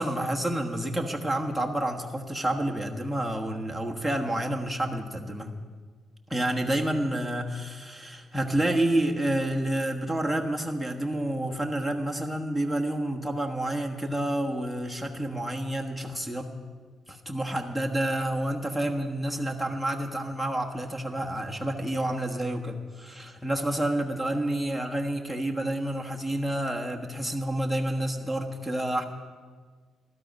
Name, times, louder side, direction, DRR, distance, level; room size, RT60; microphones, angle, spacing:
voice 1, 0.0-5.5 6.3-16.5 17.1-29.0, right 1 dB, 5° left, 4 dB, 1.3 m, -29 dB
15.5 x 12.5 x 5.3 m, 1.6 s
cardioid pair, 90°, 0 cm